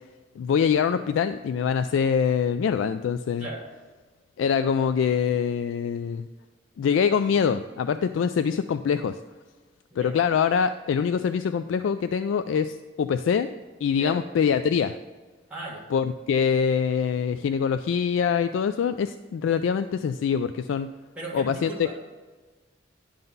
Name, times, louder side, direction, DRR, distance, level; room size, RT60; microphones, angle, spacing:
voice 1, 0.4-3.5 4.4-6.3 6.8-9.2 10.0-13.5 13.8-15.0 15.9-20.9 21.3-21.7, left 7 dB, 80° left, 10 dB, 0.3 m, -24 dB
voice 2, 15.5-15.8 21.2-22.0, right 2 dB, 5° right, -7 dB, 2.0 m, -37 dB
10.5 x 3.9 x 5.4 m, 1.3 s
head